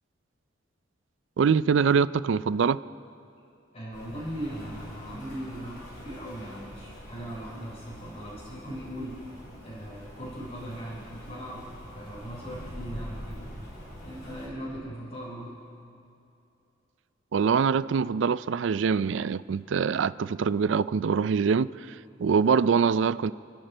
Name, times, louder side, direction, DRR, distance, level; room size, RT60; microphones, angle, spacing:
voice 1, 1.4-2.8 17.3-21.7 22.2-23.3, right 6 dB, 75° right, 17 dB, 0.4 m, -24 dB
voice 2, 3.7-9.3 9.6-13.4 14.0-15.6, equal, 35° left, -9 dB, 3.6 m, -39 dB
Rain, 3.9-14.5, equal, 55° left, 3.9 m, -44 dB
29.5 x 10.5 x 4.5 m, 2.7 s
head